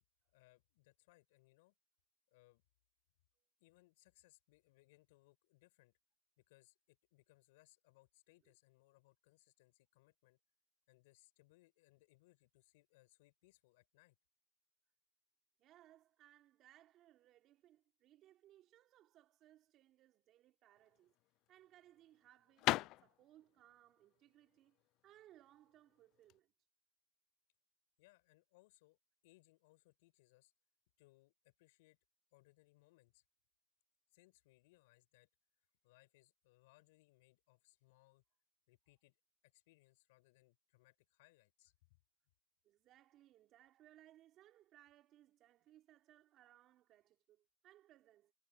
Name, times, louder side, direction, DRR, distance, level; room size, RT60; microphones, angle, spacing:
voice 1, 0.3-1.7 2.3-2.6 3.6-6.0 6.4-10.4 10.9-14.2 28.0-29.0 29.2-30.5 31.0-32.0 32.3-33.2 34.1-35.3 35.8-38.2 38.7-39.2 39.4-42.0, left 22 dB, 75° left, 6.0 m, -70 dB
voice 2, 15.6-21.1 21.5-26.5 42.6-48.3, right 13 dB, 50° right, 2.6 m, -66 dB
sound 1, 20.8-26.4, left 18 dB, 60° left, 0.3 m, -42 dB
hypercardioid pair, 85°, 0 cm